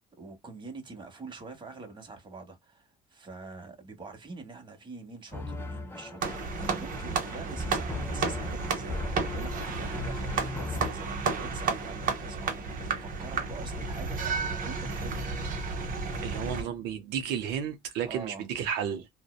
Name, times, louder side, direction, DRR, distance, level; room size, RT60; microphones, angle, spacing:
voice 1, 0.2-15.2 16.2-16.7 18.1-18.4, right 3 dB, 30° right, 1.0 m, -45 dB
sound 1, 5.3-10.9, left 2 dB, 15° left, 0.5 m, -38 dB
sound 2, 6.2-16.6, right 4 dB, 55° right, 0.8 m, -32 dB
voice 2, 16.2-19.1, right 8 dB, 90° right, 0.5 m, -32 dB
2.6 x 2.1 x 2.2 m
cardioid pair, 110°, 17 cm